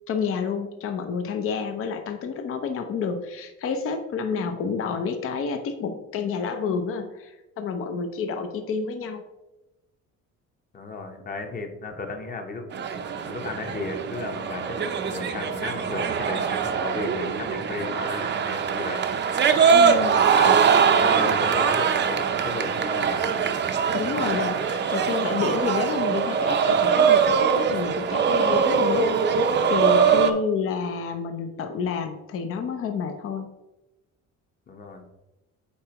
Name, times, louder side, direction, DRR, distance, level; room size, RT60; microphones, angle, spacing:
voice 1, 0.1-9.2 19.7-20.2 23.9-29.1 29.7-33.5, left 5 dB, 45° left, 6 dB, 0.7 m, -29 dB
voice 2, 10.7-12.7 13.2-19.1 19.8-20.6 21.0-23.2 30.0-30.3 34.7-35.0, left 3 dB, 30° left, 4 dB, 1.0 m, -35 dB
sound 1, 12.7-30.3, right 6 dB, 40° right, 0.6 m, -22 dB
8.4 x 4.6 x 3.0 m, 0.99 s
cardioid pair, 130°, 30 cm